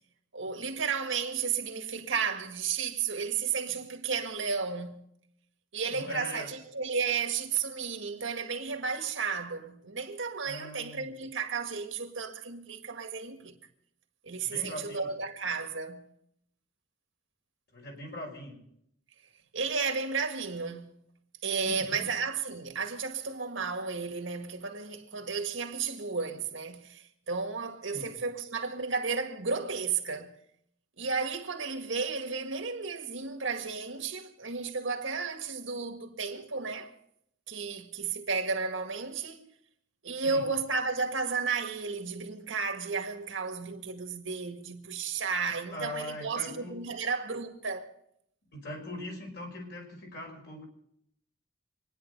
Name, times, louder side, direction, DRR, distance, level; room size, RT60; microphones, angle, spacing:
voice 1, 0.3-5.1 5.7-13.6 14.2-16.1 19.5-21.0 21.4-30.4 31.0-36.9 37.5-39.4 40.0-47.9, right 5 dB, 70° right, 1.8 m, -33 dB
voice 2, 5.9-6.5 10.4-11.1 14.4-15.1 17.7-18.6 21.6-22.1 27.9-28.1 40.2-40.5 45.7-47.0 48.5-50.6, left 1 dB, 55° left, 5.4 m, -41 dB
26.0 x 10.0 x 5.4 m
head